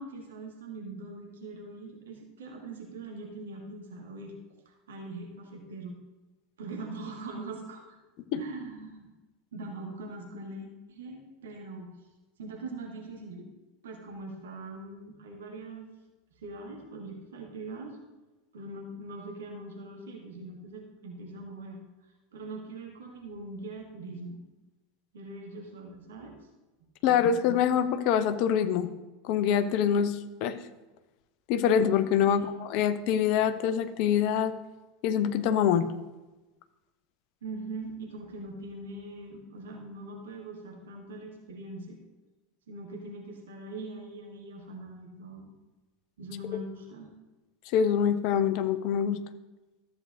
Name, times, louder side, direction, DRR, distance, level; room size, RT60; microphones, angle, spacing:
voice 1, 0.0-4.3 4.7-6.0 6.6-7.8 8.4-9.1 9.5-11.9 12.4-13.5 13.8-15.9 16.4-18.0 18.5-24.4 25.1-26.3 27.1-27.2 32.3-32.5 37.4-42.0 42.7-45.5 46.2-47.1, right 2 dB, 65° right, 0 dB, 1.7 m, -42 dB
voice 2, 27.0-28.9 29.2-30.6 31.5-34.5 35.0-35.9 47.7-49.2, left 8 dB, 50° left, 11 dB, 0.6 m, -25 dB
13.5 x 7.8 x 2.6 m, 1.1 s
figure-of-eight pair, 80°, 0 cm